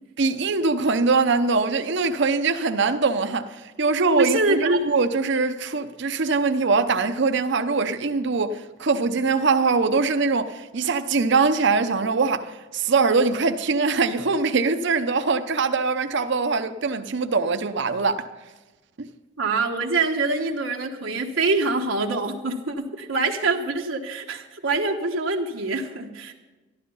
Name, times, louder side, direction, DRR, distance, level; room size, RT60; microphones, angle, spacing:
voice 1, 0.2-18.3 19.0-19.1, right 4 dB, 65° right, 0.7 m, -22 dB
voice 2, 4.2-4.8 19.4-26.3, right 3 dB, 90° right, 1.3 m, -25 dB
12.5 x 12.0 x 5.5 m
head